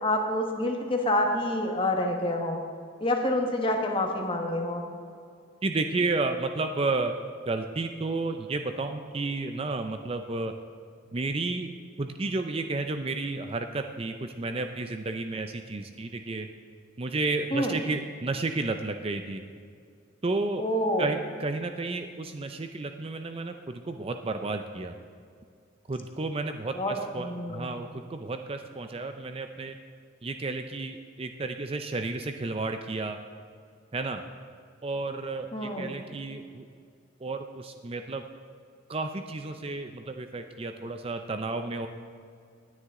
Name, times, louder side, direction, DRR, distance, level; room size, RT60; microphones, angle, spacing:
voice 1, 0.0-2.6 3.0-4.8 17.5-17.8 20.6-21.1 26.7-26.9 27.2-27.7 35.5-35.9, left 1 dB, 25° left, 2 dB, 1.4 m, -27 dB
voice 2, 5.6-7.1 7.5-10.5 11.1-11.7 12.0-16.5 17.0-19.4 20.2-20.6 21.0-24.9 25.9-29.8 30.2-33.2 33.9-34.2 34.8-36.6 37.2-38.2 38.9-41.9, right 3 dB, 30° right, 7 dB, 0.5 m, -32 dB
18.5 x 9.7 x 3.7 m, 2.2 s
head